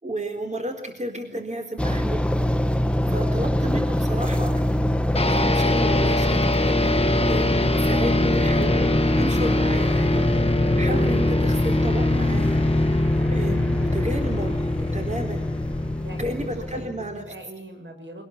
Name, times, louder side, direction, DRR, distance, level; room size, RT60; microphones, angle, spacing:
voice 1, 0.0-2.2 3.1-4.6 5.3-6.4 7.2-10.3 10.8-12.6 13.3-14.7 14.9-15.5 16.2-17.3, right 1 dB, 35° right, 4 dB, 4.0 m, -32 dB
sound 1, 1.8-16.9, left 1 dB, 5° left, 1.2 m, -25 dB
sound 2, 5.1-17.4, left 2 dB, 30° left, 1.5 m, -24 dB
voice 2, 16.0-18.3, right 1 dB, 75° right, 4 dB, 6.7 m, -41 dB
25.0 x 19.0 x 8.6 m, 0.69 s
wide cardioid pair, 60°, 20 cm